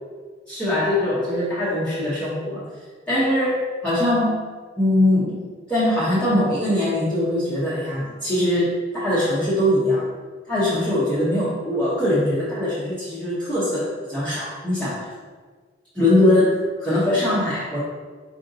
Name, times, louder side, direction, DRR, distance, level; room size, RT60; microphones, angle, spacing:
voice 1, 0.5-2.7 3.1-4.4 4.8-10.1 10.5-15.1 15.9-17.8, left 1 dB, 5° left, -11 dB, 0.8 m, -22 dB
4.9 x 2.7 x 3.9 m, 1.5 s
head